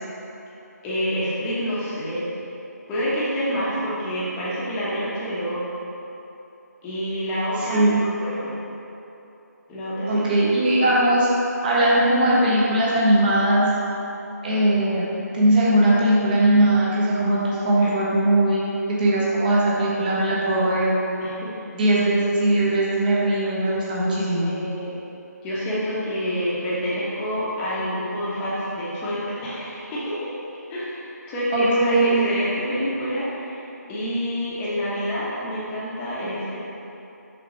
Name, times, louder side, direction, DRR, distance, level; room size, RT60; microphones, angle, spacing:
voice 1, 0.8-2.2 2.9-5.6 6.8-7.9 8.2-8.5 9.7-10.3 17.8-17.9 21.2-21.5 24.4-24.9 25.4-30.3 30.7-33.6 33.9-36.6, equal, 10° left, -9 dB, 1.1 m, -27 dB
voice 2, 7.6-8.1 10.1-11.3 11.6-13.7 14.4-15.1 15.3-21.0 21.7-24.5 31.5-32.2, right 1 dB, 30° right, -7 dB, 1.3 m, -20 dB
7.6 x 6.0 x 3.1 m, 3.0 s
figure-of-eight pair, 160°, 9 cm